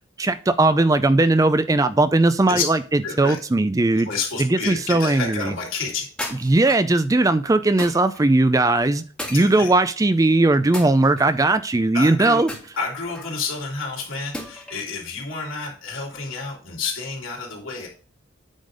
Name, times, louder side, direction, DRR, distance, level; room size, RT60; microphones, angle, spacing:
voice 1, 0.2-4.1 4.4-5.5 6.4-9.0 9.3-12.5, right 2 dB, 15° right, 0.3 m, -18 dB
voice 2, 3.0-3.4 4.0-6.1 9.3-9.7 11.9-12.4 12.8-17.9, left 4 dB, 85° left, 3.1 m, -29 dB
sound 1, 6.2-6.9 7.8-8.2 9.2-10.0 10.7-11.5 12.5-13.4 14.3-14.9, left 1 dB, 5° left, 1.8 m, -35 dB
8.9 x 3.9 x 5.0 m
head